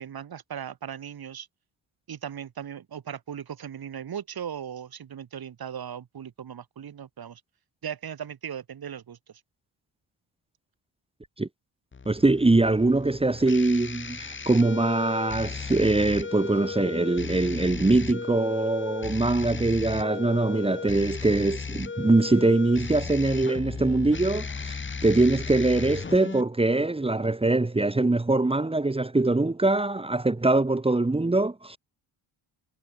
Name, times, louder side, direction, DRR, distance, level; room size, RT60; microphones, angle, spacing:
voice 1, 0.0-1.5 2.1-7.4 7.8-9.2, right 8 dB, 45° right, 6.6 m, -38 dB
sound 1, 11.9-26.4, left 5 dB, 25° left, 2.9 m, -35 dB
voice 2, 12.1-31.8, right 2 dB, 10° right, 2.4 m, -23 dB
wide cardioid pair, 175°, 49 cm